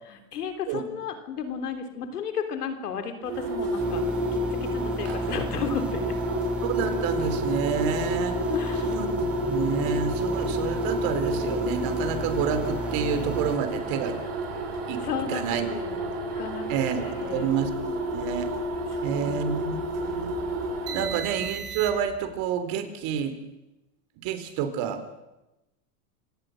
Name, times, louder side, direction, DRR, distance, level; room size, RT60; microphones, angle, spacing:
voice 1, 0.1-6.2 8.5-9.0 15.0-16.1 16.4-16.7 17.0-17.5 18.9-19.5, left 6 dB, 80° left, 8 dB, 3.5 m, -34 dB
sound 1, 3.2-22.2, equal, 35° right, 7.4 m, -30 dB
sound 2, 3.8-13.6, right 2 dB, ahead, 1.5 m, -35 dB
voice 2, 6.6-8.4 8.8-14.2 14.9-15.7 16.7-17.0 17.3-17.7 18.0-18.5 19.0-20.3 20.9-23.3 24.2-25.0, right 7 dB, 50° right, 10 dB, 3.7 m, -29 dB
26.5 x 17.5 x 6.5 m, 0.95 s
hypercardioid pair, 105°, 45 cm